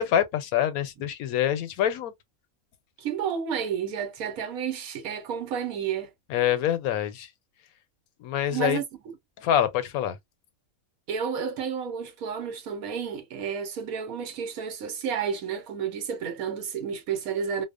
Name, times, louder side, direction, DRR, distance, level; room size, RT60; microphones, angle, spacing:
voice 1, 0.0-2.1 6.3-7.3 8.2-8.8 9.4-10.2, left 10 dB, 80° left, 1.1 m, -25 dB
voice 2, 3.0-6.1 8.5-8.8 11.1-17.6, right 7 dB, 80° right, 1.2 m, -31 dB
2.7 x 2.0 x 2.4 m
omnidirectional pair, 1.5 m